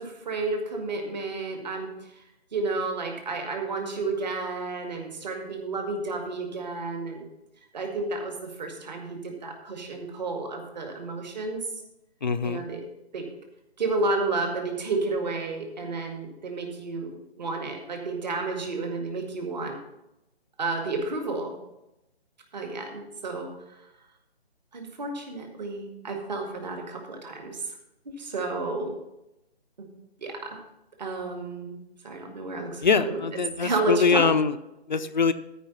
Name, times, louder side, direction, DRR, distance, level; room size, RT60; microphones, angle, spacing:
voice 1, 0.0-2.2 2.5-7.3 7.7-11.6 12.4-12.9 13.1-13.3 13.8-19.8 20.6-21.6 22.5-23.5 24.7-27.7 28.1-29.0 29.8-29.9 30.2-30.6 31.0-31.7 32.0-33.2 33.6-34.3, right 3 dB, 40° right, 3 dB, 1.9 m, -31 dB
voice 2, 12.2-12.6 32.8-34.5 34.9-35.3, left 5 dB, 45° left, 11 dB, 0.6 m, -23 dB
13.5 x 5.2 x 5.6 m, 0.91 s
figure-of-eight pair, 145°, 32 cm